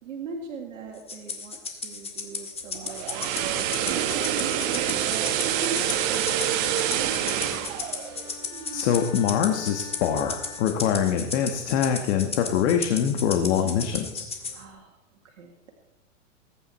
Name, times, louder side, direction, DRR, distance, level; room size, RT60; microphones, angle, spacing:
voice 1, 0.0-4.5 5.0-7.5 14.5-15.7, right 4 dB, 75° right, 2 dB, 1.9 m, -41 dB
Rattle (instrument), 1.1-14.6, left 4 dB, 15° left, 2.1 m, -35 dB
sound 1, 2.8-9.0 9.3-9.5, right 10 dB, 45° right, 1.5 m, -27 dB
Wind instrument woodwind instrument, 4.6-12.6, left 6 dB, 80° left, 3.3 m, -48 dB
voice 2, 8.7-14.2, left 8 dB, 60° left, 4 dB, 1.5 m, -24 dB
20.5 x 9.5 x 4.3 m, 1.0 s
hypercardioid pair, 110°, 38 cm